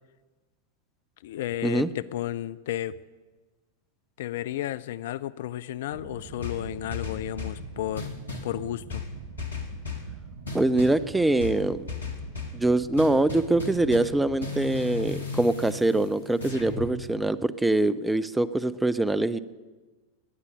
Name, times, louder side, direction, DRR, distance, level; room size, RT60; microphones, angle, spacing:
voice 1, 1.2-2.9 4.2-8.1 8.4-9.0, left 12 dB, 55° left, 16 dB, 0.4 m, -32 dB
sound 1, 5.9-14.4, right 6 dB, 55° right, 1.4 m, -44 dB
sound 2, 6.4-7.6 8.0-8.5 8.9-10.1 10.5-11.0 11.4-12.6 13.0-16.9, left 5 dB, 75° left, 2.0 m, -35 dB
voice 2, 10.5-11.8 12.5-19.4, right 2 dB, 5° right, 15 dB, 0.6 m, -24 dB
19.0 x 9.7 x 6.7 m, 1.3 s
figure-of-eight pair, 90°, 0 cm